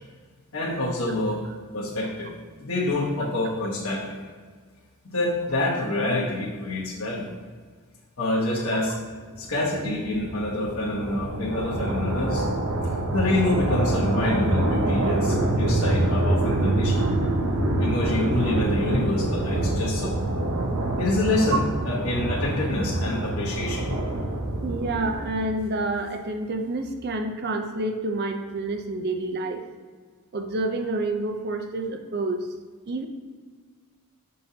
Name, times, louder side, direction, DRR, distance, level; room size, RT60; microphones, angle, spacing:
voice 1, 0.5-1.4 1.7-2.3 2.6-4.2 5.0-7.3 8.2-8.9 9.4-12.5 12.8-17.0 17.8-20.1 21.0-23.8, left 2 dB, 65° left, -5 dB, 1.3 m, -27 dB
sound 1, 9.3-25.5, right 1 dB, 85° right, 0.8 m, -25 dB
voice 2, 24.6-29.6 30.3-32.5 32.9-33.1, right 2 dB, 45° right, 6 dB, 0.5 m, -28 dB
6.4 x 5.4 x 2.8 m, 1.5 s
head